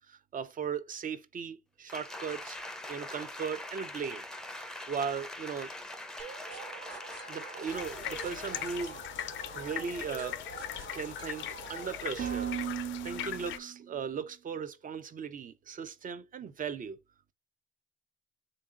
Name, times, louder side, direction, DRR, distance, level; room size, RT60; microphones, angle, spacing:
voice 1, 0.1-2.6 2.9-4.2 4.6-5.7 7.3-9.0 9.5-10.4 10.9-12.5 13.0-17.0, right 6 dB, 45° right, 0.5 m, -38 dB
Applause, 1.9-9.0 9.4-9.6, left 1 dB, 5° left, 0.5 m, -43 dB
sound 1, 6.2-14.0, right 8 dB, 70° right, 1.3 m, -41 dB
sound 2, 7.7-13.6, left 12 dB, 75° left, 0.4 m, -40 dB
3.8 x 2.6 x 3.6 m
cardioid pair, 90°, 20 cm